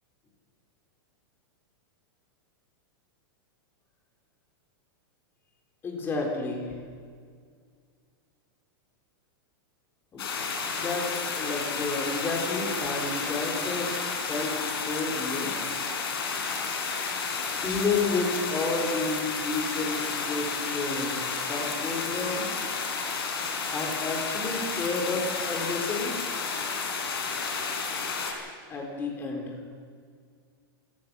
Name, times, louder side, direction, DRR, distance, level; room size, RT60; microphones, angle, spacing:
voice 1, 5.8-6.7 10.1-10.2 10.8-13.9 14.3-15.6 17.6-22.5 23.7-26.2 28.7-29.6, left 3 dB, 15° left, 1 dB, 4.1 m, -31 dB
sound 1, 10.2-28.3, left 5 dB, 85° left, 4.8 m, -31 dB
27.5 x 15.0 x 6.3 m, 2.1 s
supercardioid pair, 160°, 12 cm